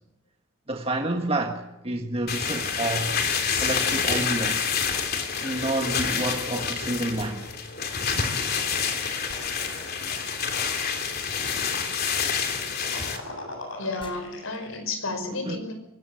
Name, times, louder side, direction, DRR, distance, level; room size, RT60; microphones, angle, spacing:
voice 1, 0.7-3.2 3.6-4.7 5.4-7.5 12.8-13.0 15.4-15.6, right 2 dB, 30° right, 3 dB, 1.6 m, -29 dB
sound 1, 2.3-13.2, left 6 dB, 50° left, 3.1 m, -28 dB
sound 2, 4.9-5.2 7.2-7.4 9.3-9.6 11.8-11.9 13.3-13.4 13.7-13.8 14.0-14.3, left 2 dB, 25° left, 3.5 m, -44 dB
sound 3, 8.5-14.8, left 2 dB, 65° left, 7.6 m, -42 dB
voice 2, 13.7-15.7, left 3 dB, 85° left, 7 dB, 5.5 m, -32 dB
24.5 x 18.0 x 7.7 m, 0.91 s
head